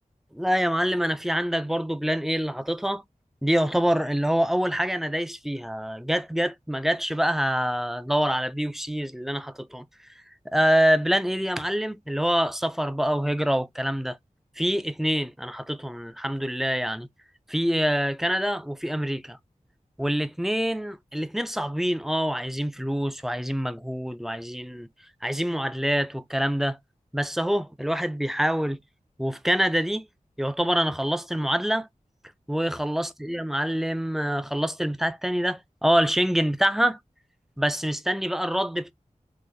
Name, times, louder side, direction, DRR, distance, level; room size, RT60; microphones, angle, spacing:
voice 1, 0.3-3.0 3.4-9.9 10.5-14.2 14.6-17.1 17.5-19.4 20.0-24.9 25.2-26.8 27.1-28.8 29.2-30.1 30.4-31.9 32.5-37.0 37.6-38.9, equal, ahead, 0.4 m, -25 dB
3.9 x 2.6 x 2.5 m
wide cardioid pair, 60°, 13 cm